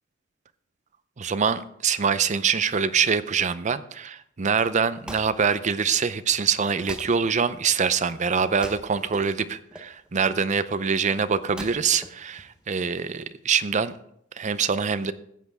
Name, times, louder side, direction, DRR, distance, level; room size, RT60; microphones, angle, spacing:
voice 1, 1.2-13.9 14.4-15.1, right 6 dB, 35° right, 13 dB, 0.5 m, -24 dB
Wood, 4.6-13.0, equal, 5° right, 0.9 m, -45 dB
15.0 x 8.3 x 3.6 m, 0.72 s
head